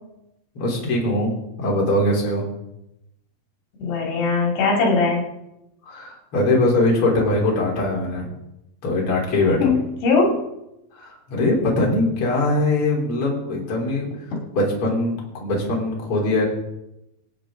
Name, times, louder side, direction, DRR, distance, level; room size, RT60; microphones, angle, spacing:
voice 1, 0.6-1.3 1.6-2.4 5.8-8.3 8.8-9.7 10.9-14.1 14.5-16.4, left 2 dB, 35° left, -3 dB, 4.1 m, -21 dB
voice 2, 3.8-5.2 9.6-10.4, left 4 dB, 80° left, -1 dB, 4.5 m, -20 dB
25.5 x 8.8 x 3.8 m, 0.88 s
omnidirectional pair, 4.8 m